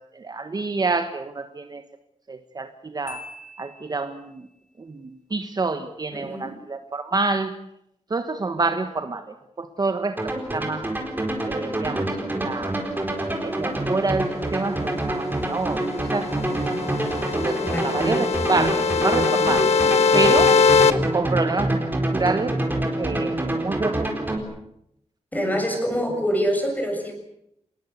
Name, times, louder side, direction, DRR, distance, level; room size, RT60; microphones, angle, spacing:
voice 1, 0.0-1.8 2.3-3.2 3.6-4.5 4.8-7.6 8.1-10.9 11.4-12.8 13.4-16.9 17.2-19.7 20.1-20.6 21.1-22.6 23.0-24.3 25.7-25.8, right 3 dB, 35° right, 8 dB, 1.4 m, -28 dB
Marimba xylophone, 3.1-4.5, left 3 dB, 85° left, 5.5 m, -43 dB
voice 2, 6.1-6.5 17.5-18.0 25.3-27.1, equal, 15° left, 3 dB, 7.0 m, -25 dB
sound 1, 10.2-24.4, right 1 dB, 15° right, 4.3 m, -26 dB
sound 2, 16.0-20.9, left 5 dB, 65° left, 1.4 m, -21 dB
26.5 x 20.0 x 8.2 m, 0.78 s
wide cardioid pair, 155°, 12 cm